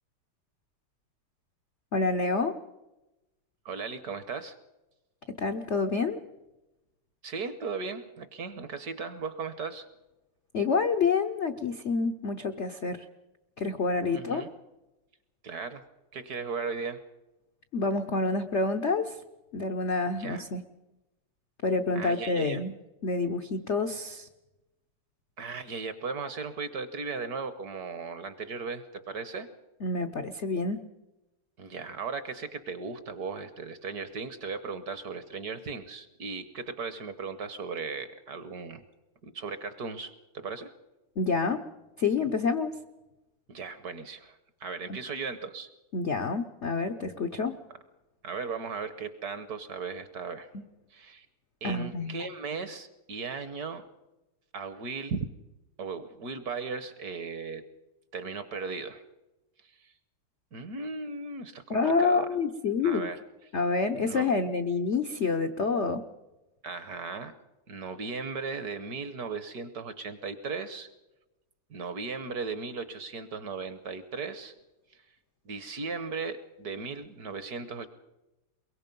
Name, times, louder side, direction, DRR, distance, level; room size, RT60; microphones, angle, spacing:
voice 1, 1.9-2.6 5.4-6.2 10.5-13.0 13.6-14.4 17.7-19.2 19.5-20.6 21.6-22.7 23.0-24.3 29.8-30.8 41.2-41.6 42.0-42.8 45.9-47.6 50.5-50.6 51.6-52.3 61.7-63.1 63.5-66.0, left 4 dB, 65° left, 7 dB, 0.6 m, -28 dB
voice 2, 3.6-4.6 7.2-9.9 14.1-14.5 15.4-15.8 16.1-17.0 20.2-20.5 21.9-22.6 25.4-29.5 31.6-38.8 39.2-40.7 43.5-45.7 48.2-50.5 50.9-51.3 51.6-53.9 54.5-55.3 55.8-57.6 58.1-59.0 59.6-59.9 60.5-62.3 62.8-63.2 64.0-64.3 66.6-67.3 67.7-70.9 71.7-74.5 74.9-75.0 75.4-77.9, right 4 dB, 55° right, 12 dB, 1.2 m, -37 dB
22.5 x 22.5 x 5.3 m, 1.0 s
omnidirectional pair, 2.4 m